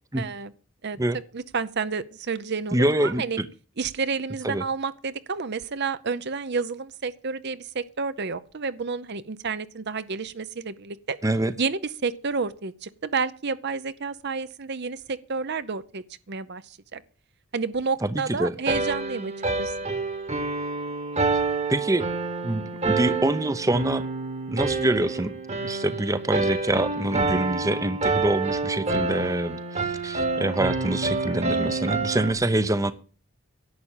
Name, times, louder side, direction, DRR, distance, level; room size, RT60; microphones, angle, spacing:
voice 1, 0.2-0.5 0.8-1.0 1.3-3.4 3.8-11.2 11.6-17.0 17.5-19.3 19.6-19.7 26.7-26.9, right 4 dB, 50° right, 14 dB, 0.7 m, -30 dB
voice 2, 2.7-3.5 4.4-4.6 11.2-11.5 18.0-18.1 18.4-18.5 21.7-22.0 22.4-24.0 24.5-25.4 25.6-32.9, right 1 dB, 15° right, 13 dB, 0.7 m, -25 dB
sound 1, 18.7-32.3, right 3 dB, 30° right, 1.3 m, -28 dB
11.0 x 8.5 x 9.0 m, 0.40 s
head